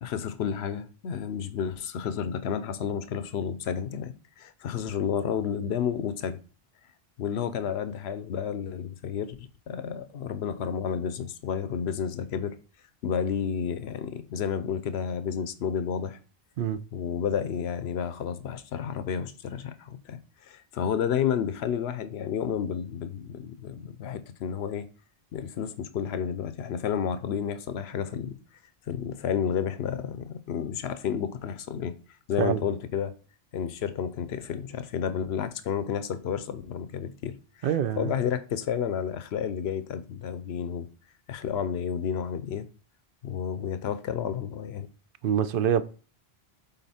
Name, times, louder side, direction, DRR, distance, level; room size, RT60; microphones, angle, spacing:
voice 1, 0.0-6.4 7.2-12.6 13.0-16.2 16.9-24.9 25.3-28.4 28.9-31.9 32.3-33.1 33.5-40.9 41.3-42.7 43.2-44.9, left 8 dB, 85° left, 0.9 m, -31 dB
voice 2, 37.6-38.2 45.2-45.8, right 9 dB, 65° right, 0.7 m, -25 dB
8.1 x 3.9 x 4.2 m
omnidirectional pair, 1.1 m